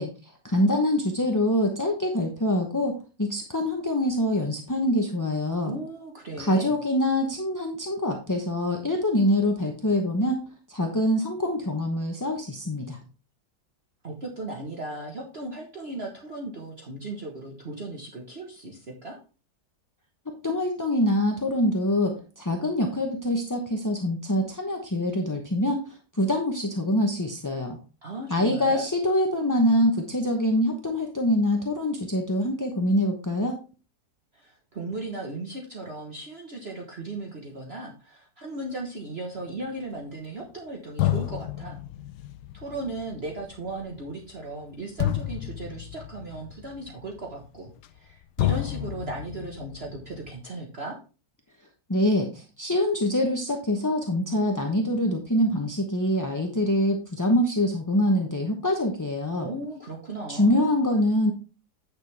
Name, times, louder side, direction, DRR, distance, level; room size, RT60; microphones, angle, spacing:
voice 1, 0.0-5.7 6.4-13.0 20.3-27.8 28.3-33.6 51.9-59.5 60.3-61.3, left 1 dB, 15° left, 2 dB, 0.7 m, -25 dB
voice 2, 5.6-6.7 14.0-19.2 28.0-28.8 34.3-41.8 42.5-51.0 59.4-60.6, right 2 dB, 40° right, 0 dB, 1.5 m, -37 dB
sound 1, 40.4-40.5 41.0-48.1 48.4-50.4, left 14 dB, 80° left, 1.2 m, -31 dB
9.6 x 6.4 x 3.5 m, 0.33 s
omnidirectional pair, 1.8 m